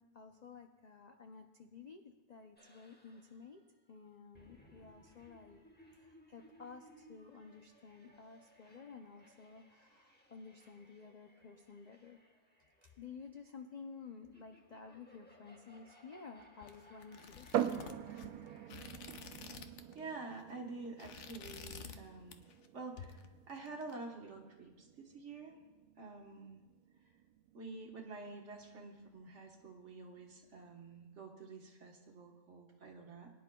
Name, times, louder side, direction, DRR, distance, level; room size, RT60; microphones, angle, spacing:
voice 1, 0.0-3.6 3.9-5.6 5.9-12.3 12.8-17.5, left 5 dB, 75° left, 5 dB, 0.3 m, -53 dB
sound 1, 2.6-18.7, equal, 10° left, 1.0 m, -64 dB
sound 2, 16.6-20.0 20.3-20.5 20.8-22.0 22.3-22.7 23.0-23.9, left 7 dB, 60° left, 0.9 m, -51 dB
sound 3, 17.5-31.0, right 10 dB, 90° right, 1.1 m, -45 dB
voice 2, 19.9-22.5 22.7-25.5 26.0-26.6 27.5-33.3, right 3 dB, 55° right, 1 dB, 1.5 m, -48 dB
22.5 x 10.0 x 2.3 m, 1.2 s
omnidirectional pair, 1.5 m